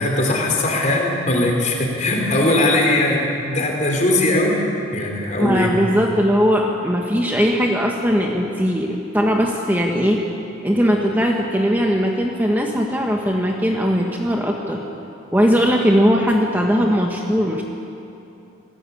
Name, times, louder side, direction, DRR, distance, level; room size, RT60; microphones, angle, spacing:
voice 1, 0.0-4.6 4.9-5.7, left 1 dB, 35° left, 0 dB, 4.3 m, -19 dB
voice 2, 5.4-10.2 10.6-14.8 15.3-17.6, equal, 10° right, 0 dB, 1.4 m, -19 dB
27.0 x 17.0 x 8.6 m, 2.8 s
head